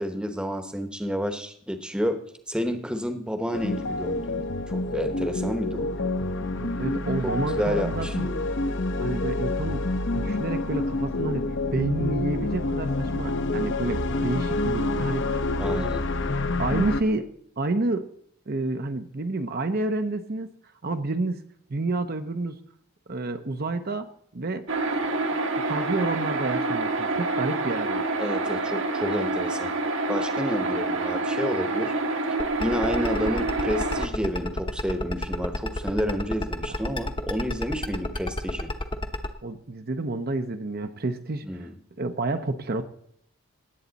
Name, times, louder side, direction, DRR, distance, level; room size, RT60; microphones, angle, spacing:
voice 1, 0.0-6.1 7.2-8.4 15.6-16.0 28.2-29.7 30.1-32.0 32.6-38.7 41.4-41.7, equal, 5° right, 7 dB, 0.9 m, -30 dB
sound 1, 3.5-17.0, left 2 dB, 55° left, 0.9 m, -28 dB
voice 2, 6.6-8.3 9.0-9.9 10.1-11.5 11.7-15.9 16.6-17.3 17.6-18.1 18.5-20.5 20.8-21.4 21.7-22.6 23.1-24.1 24.3-24.7 25.6-28.1 36.7-36.8 39.4-41.7 42.0-42.8, right 2 dB, 45° right, 8 dB, 0.7 m, -29 dB
sound 2, 24.7-34.1, right 2 dB, 60° right, 1.2 m, -27 dB
sound 3, 32.4-39.3, left 1 dB, 20° left, 0.9 m, -29 dB
18.5 x 8.5 x 4.0 m, 0.68 s
head